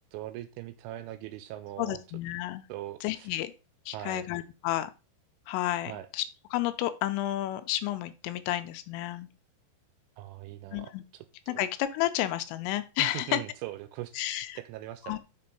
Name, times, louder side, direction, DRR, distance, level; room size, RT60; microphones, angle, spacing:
voice 1, 0.1-2.0 2.7-3.3 3.9-4.3 5.9-6.1 10.2-11.6 13.0-14.2 14.6-15.2, right 14 dB, 85° right, 10 dB, 2.9 m, -40 dB
voice 2, 1.8-2.6 3.0-3.5 3.9-4.9 5.5-6.2 6.5-9.3 10.7-11.0 11.5-13.4 14.2-14.6 15.1-15.2, left 14 dB, 85° left, 11 dB, 3.1 m, -31 dB
6.8 x 5.4 x 5.3 m, 0.30 s
omnidirectional pair, 5.8 m